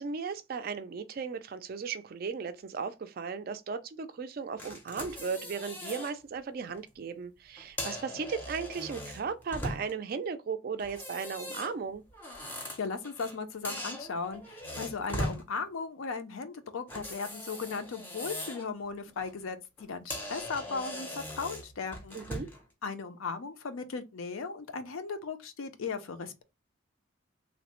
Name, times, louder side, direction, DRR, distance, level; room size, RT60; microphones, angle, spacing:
voice 1, 0.0-12.0 22.1-22.5, right 5 dB, 45° right, 0.3 m, -36 dB
sound 1, 4.6-6.1 6.6-6.8 7.6-10.1 10.8-13.4 13.6-15.4 16.9-18.7 19.1-19.3 19.8-19.9 20.1-22.6, equal, 10° left, 0.5 m, -40 dB
voice 2, 12.6-22.2 22.8-26.4, left 4 dB, 80° left, 0.5 m, -37 dB
3.1 x 2.0 x 2.9 m
head